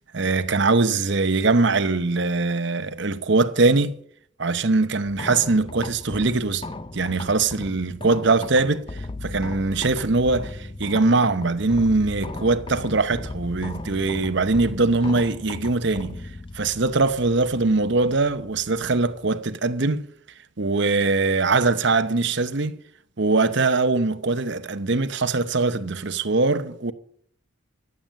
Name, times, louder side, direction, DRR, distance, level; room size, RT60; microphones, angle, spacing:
voice 1, 0.1-3.9 4.4-6.6 6.9-8.8 9.2-16.2 16.5-20.0 20.6-22.8 23.2-26.9, right 3 dB, 60° right, 0.9 m, -22 dB
sound 1, 5.1-19.3, left 2 dB, 25° left, 0.7 m, -37 dB
14.5 x 9.0 x 7.5 m
head